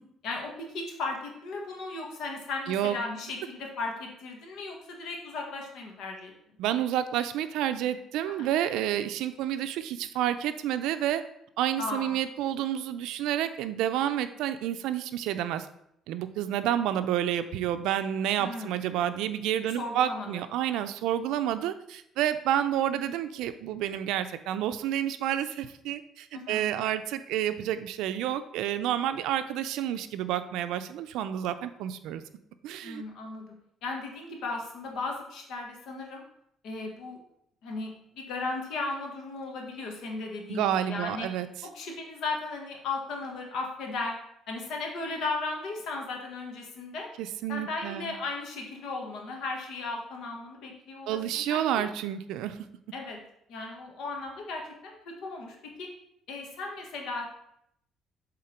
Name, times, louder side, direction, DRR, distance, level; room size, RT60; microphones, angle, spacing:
voice 1, 0.2-6.3 8.4-8.5 11.8-12.2 18.4-18.8 19.8-20.3 26.3-26.7 32.8-33.5 33.8-36.2 36.6-37.2 37.6-41.3 41.7-44.1 44.5-47.1 47.5-51.6 52.9-53.2 53.5-55.9 56.3-57.3, left 3 dB, 70° left, 1 dB, 1.5 m, -36 dB
voice 2, 6.6-11.2 11.6-15.7 16.1-32.2 32.6-33.0 40.5-41.5 47.2-48.1 51.1-52.6, right 11 dB, 90° right, 11 dB, 0.4 m, -29 dB
7.6 x 3.6 x 4.4 m, 0.76 s
cardioid pair, 140°, 0 cm